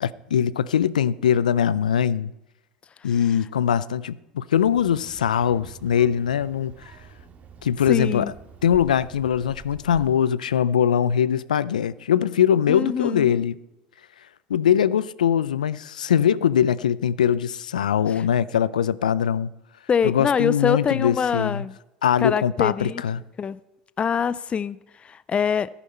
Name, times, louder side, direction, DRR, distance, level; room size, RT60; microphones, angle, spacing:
voice 1, 0.0-2.3 3.0-6.7 7.6-8.3 8.6-13.6 14.5-19.5 20.0-21.7 22.0-23.2, left 9 dB, 90° left, 0.4 m, -22 dB
Child speech kid speaking, 4.6-10.2, right 5 dB, 40° right, 1.9 m, -46 dB
voice 2, 7.9-8.3 12.7-13.3 19.9-21.7 22.2-23.0 23.4-23.6 24.0-25.7, left 7 dB, 30° left, 0.4 m, -24 dB
14.0 x 11.0 x 4.3 m
hypercardioid pair, 80°, 4 cm